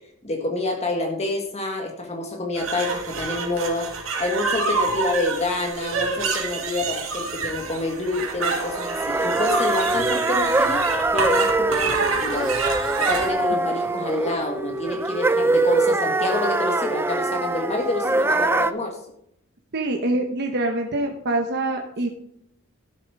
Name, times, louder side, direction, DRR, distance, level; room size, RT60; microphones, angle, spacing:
voice 1, 0.2-3.9 4.2-10.8 11.1-12.5 13.0-19.0, left 2 dB, 30° left, 3 dB, 1.5 m, -27 dB
sound 1, 2.6-13.3, right 4 dB, 75° right, 2.4 m, -27 dB
sound 2, 8.4-18.7, right 2 dB, 10° right, 0.4 m, -23 dB
voice 2, 19.7-22.1, right 2 dB, 55° right, 3 dB, 1.1 m, -25 dB
12.5 x 7.1 x 4.8 m, 0.73 s
head